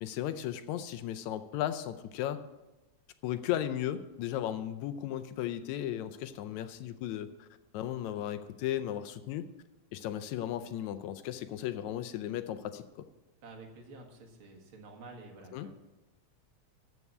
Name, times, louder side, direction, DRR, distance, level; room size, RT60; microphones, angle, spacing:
voice 1, 0.0-2.4 3.2-7.5 7.7-9.5 9.9-12.8 15.5-15.7, left 11 dB, 80° left, 11 dB, 1.9 m, -35 dB
voice 2, 13.4-15.7, right 3 dB, 50° right, 2 dB, 2.2 m, -50 dB
13.5 x 4.7 x 8.4 m, 1.0 s
omnidirectional pair, 3.3 m